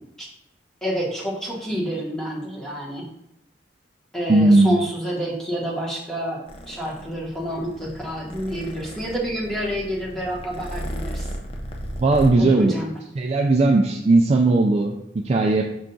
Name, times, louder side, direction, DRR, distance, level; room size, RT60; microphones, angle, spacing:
voice 1, 0.8-3.1 4.1-11.3 12.4-12.9, equal, 5° left, -5 dB, 1.0 m, -28 dB
voice 2, 4.3-4.8 12.0-12.8 13.2-15.7, right 2 dB, 35° right, 2 dB, 0.3 m, -18 dB
Purr, 6.5-12.3, equal, 35° left, 0.5 m, -35 dB
5.6 x 2.4 x 3.8 m, 0.83 s
head